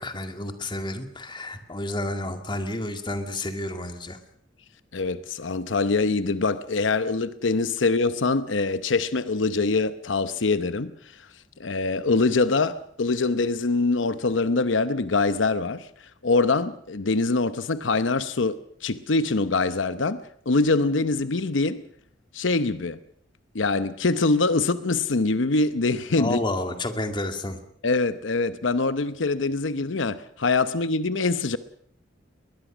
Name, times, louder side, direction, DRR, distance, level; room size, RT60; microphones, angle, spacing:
voice 1, 0.0-4.2 26.2-27.6, left 1 dB, 25° left, 2.1 m, -30 dB
voice 2, 4.9-11.3 11.6-21.8 22.3-23.0 23.5-26.4 27.8-31.6, left 3 dB, 85° left, 0.8 m, -24 dB
22.0 x 20.5 x 6.2 m
head